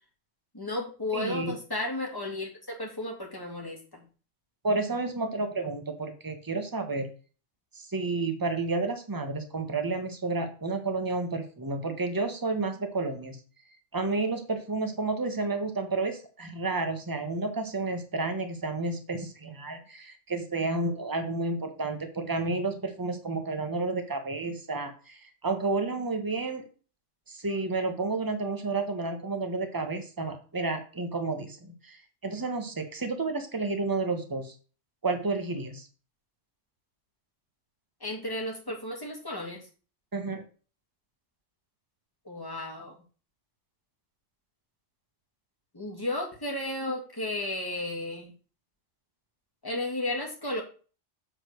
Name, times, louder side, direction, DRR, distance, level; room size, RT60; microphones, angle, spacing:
voice 1, 0.5-4.0 38.0-39.7 42.3-43.0 45.7-48.3 49.6-50.6, left 2 dB, 15° left, 0 dB, 2.2 m, -33 dB
voice 2, 1.1-1.5 4.6-7.1 7.7-13.4 13.9-26.6 27.3-34.5 35.0-35.9 40.1-40.4, right 3 dB, 15° right, 6 dB, 1.2 m, -31 dB
7.9 x 4.3 x 6.5 m, 0.37 s
omnidirectional pair, 1.3 m